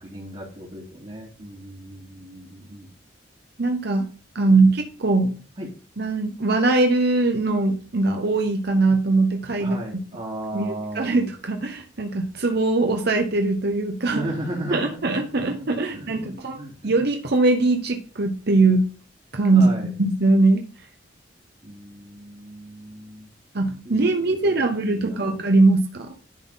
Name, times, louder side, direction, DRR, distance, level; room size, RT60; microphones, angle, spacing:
voice 1, 0.0-2.9 5.6-5.7 9.6-11.2 14.1-16.9 19.5-19.9 21.6-23.3 23.8-24.6 24.9-25.3, right 1 dB, 40° right, -6 dB, 2.4 m, -35 dB
voice 2, 3.6-4.1 4.3-5.3 6.0-9.8 10.5-14.2 14.7-18.9 19.3-20.6 23.5-26.1, right 3 dB, 60° right, 4 dB, 1.0 m, -21 dB
10.5 x 4.2 x 4.0 m, 0.37 s
head